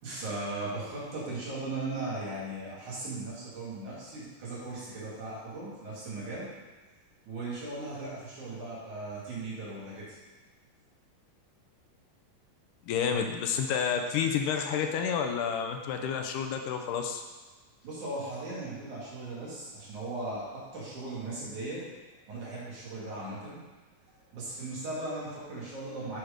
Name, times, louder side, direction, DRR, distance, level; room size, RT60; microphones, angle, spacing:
voice 1, 0.0-6.5 7.3-10.2 17.8-21.8 22.3-23.6 24.3-26.2, right 2 dB, 65° right, -8 dB, 3.9 m, -38 dB
voice 2, 12.9-17.2, left 7 dB, 80° left, 4 dB, 2.2 m, -30 dB
8.6 x 4.6 x 5.1 m, 1.3 s
omnidirectional pair, 3.7 m